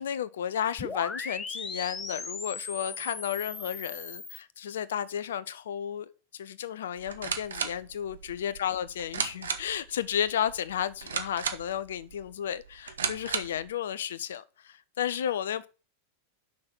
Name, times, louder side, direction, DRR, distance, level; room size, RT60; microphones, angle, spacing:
voice 1, 0.0-15.7, left 9 dB, 60° left, 0.7 m, -33 dB
sound 1, 0.8-4.4, left 4 dB, 15° left, 1.1 m, -38 dB
sound 2, 7.0-13.7, right 6 dB, 70° right, 1.1 m, -36 dB
6.4 x 6.0 x 7.3 m
figure-of-eight pair, 90°, 0 cm